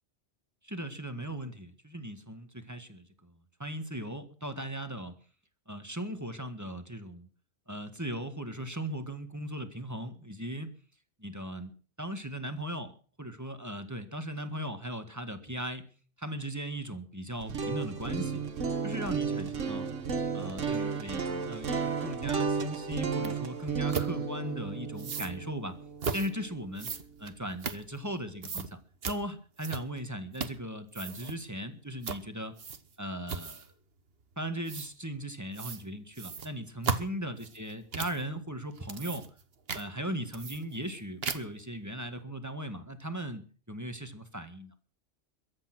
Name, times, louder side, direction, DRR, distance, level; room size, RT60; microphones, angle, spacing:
voice 1, 0.6-3.3 3.6-5.1 5.7-7.3 7.7-10.7 11.2-11.7 12.0-15.8 16.2-18.4 18.8-19.9 20.3-25.8 26.1-26.9 27.2-28.8 29.1-32.5 33.0-33.6 34.4-39.2 39.7-43.4 43.7-44.7, right 1 dB, 15° right, 8 dB, 1.7 m, -38 dB
sound 1, 17.3-27.3, right 5 dB, 90° right, 1.7 m, -33 dB
sound 2, 23.2-23.3 23.9-24.1 25.0-25.3 26.0-26.3 26.8-28.1 28.4-28.7 29.0-29.2 29.6-30.0 30.3-30.6 30.9-31.4 32.0-32.2 32.6-32.9 33.3-33.7 34.7-34.9 35.5-35.8 36.1-38.2 38.7-39.4 39.7-39.8 40.3-40.9 41.2-41.6, right 5 dB, 55° right, 1.4 m, -36 dB
23.0 x 8.7 x 6.1 m, 0.42 s
omnidirectional pair, 1.2 m